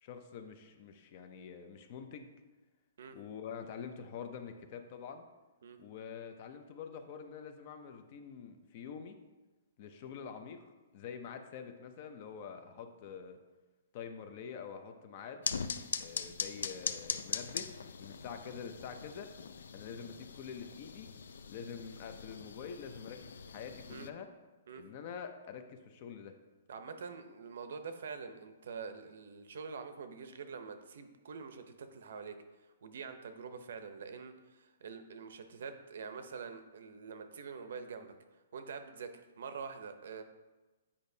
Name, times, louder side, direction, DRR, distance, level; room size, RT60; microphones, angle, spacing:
voice 1, 0.0-2.3 3.1-5.2 5.8-9.2 9.8-13.4 13.9-15.5 16.0-17.7 18.0-19.3 19.7-21.1 21.5-24.3 24.8-26.3, left 7 dB, 35° left, 7 dB, 0.5 m, -46 dB
sound 1, 15.4-24.1, left 6 dB, 85° left, 0.4 m, -41 dB
voice 2, 26.7-32.3 32.8-38.1 38.5-40.2, right 5 dB, 65° right, 8 dB, 0.7 m, -45 dB
8.6 x 5.2 x 2.7 m, 1.2 s
hypercardioid pair, 170°, 0 cm